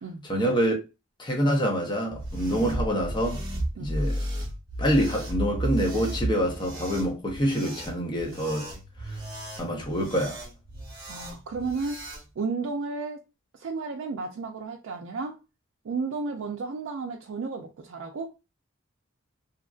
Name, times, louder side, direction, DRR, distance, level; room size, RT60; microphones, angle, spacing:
voice 1, 0.3-0.7 1.2-3.4 3.8-4.2 4.8-8.7 9.0-9.2 9.6-10.4, equal, 20° left, 0.7 m, -26 dB
sound 1, 2.1-12.2, right 1 dB, 20° right, 1.0 m, -34 dB
voice 2, 11.1-12.0 12.4-13.2 13.5-15.4 15.8-18.3, right 4 dB, 70° right, 0.4 m, -33 dB
2.8 x 2.4 x 2.4 m
head